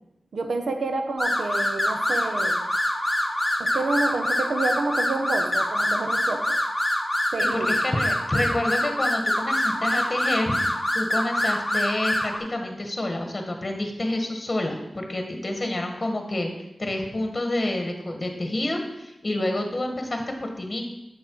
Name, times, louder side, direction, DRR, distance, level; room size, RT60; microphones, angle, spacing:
voice 1, 0.3-2.6 3.6-6.6 7.3-7.7, right 3 dB, 90° right, 6 dB, 0.8 m, -28 dB
sound 1, 1.2-12.4, left 1 dB, 10° left, 1.2 m, -25 dB
voice 2, 7.7-10.5 10.9-16.5 16.8-20.8, left 1 dB, 30° left, 4 dB, 1.5 m, -28 dB
8.6 x 6.6 x 4.7 m, 0.91 s
wide cardioid pair, 90°, 0 cm